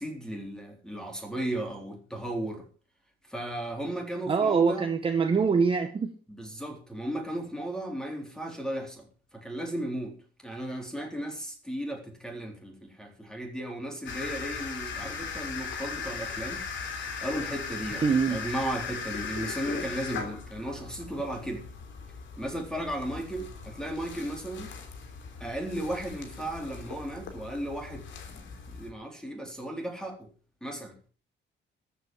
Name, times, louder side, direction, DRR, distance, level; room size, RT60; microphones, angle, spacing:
voice 1, 0.0-2.7 3.3-4.9 6.3-9.1 9.3-16.6 17.2-21.7 22.4-24.7 25.4-30.3 30.6-31.1, right 1 dB, 5° left, 3 dB, 3.9 m, -35 dB
voice 2, 4.3-6.1 18.0-18.4, right 5 dB, 25° right, 6 dB, 1.2 m, -24 dB
sound 1, 14.1-28.9, left 5 dB, 75° left, 3.3 m, -38 dB
14.0 x 8.3 x 7.3 m, 0.40 s
cardioid pair, 165°, 19 cm